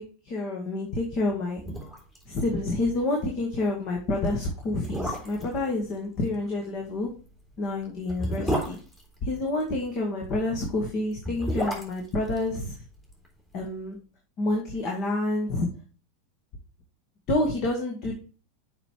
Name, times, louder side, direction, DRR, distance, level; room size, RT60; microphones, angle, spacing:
voice 1, 0.0-1.6 2.3-7.1 7.6-8.8 9.2-12.8 13.5-14.0 14.4-15.7 17.3-18.1, left 2 dB, 45° left, 1 dB, 2.0 m, -28 dB
sound 1, 1.6-2.2 2.5-2.6 3.0-3.2 3.9-4.0 4.6-5.6 7.1-9.8 11.0-13.3 13.5-13.6, equal, 10° left, 3.5 m, -32 dB
6.9 x 5.4 x 4.7 m, 0.37 s
hypercardioid pair, 90°, 0 cm